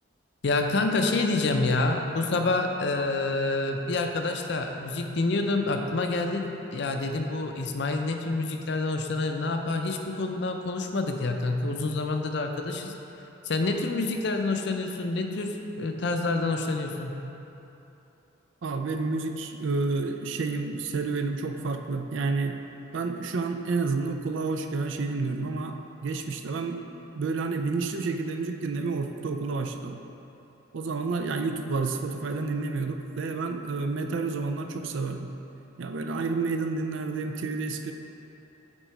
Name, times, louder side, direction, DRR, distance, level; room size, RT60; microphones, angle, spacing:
voice 1, 0.4-12.9 13.4-17.1, left 3 dB, 60° left, 4 dB, 0.5 m, -27 dB
voice 2, 18.6-22.6 22.9-25.8 26.0-26.8 27.1-30.0 30.7-35.3 35.8-37.9, right 3 dB, 65° right, 5 dB, 0.4 m, -30 dB
8.8 x 3.9 x 4.6 m, 3.0 s
head